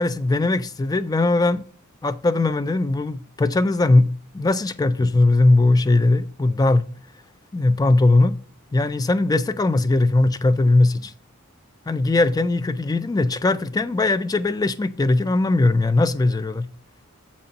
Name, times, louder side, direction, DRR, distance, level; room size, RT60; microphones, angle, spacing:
voice 1, 0.0-1.6 2.0-4.1 4.3-6.9 7.5-8.3 8.7-11.1 11.9-16.7, left 2 dB, 15° left, 0.4 m, -19 dB
7.5 x 4.3 x 5.2 m
head